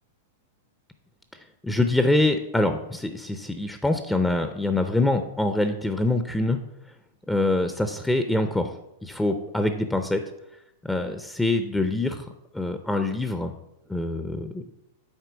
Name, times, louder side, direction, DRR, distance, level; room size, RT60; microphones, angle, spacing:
voice 1, 1.6-6.6 7.3-8.7 9.0-10.2 10.8-12.3 12.5-13.5 13.9-14.6, left 2 dB, 5° left, 7 dB, 0.6 m, -24 dB
8.0 x 4.2 x 5.1 m, 0.85 s
hypercardioid pair, 105°, 0 cm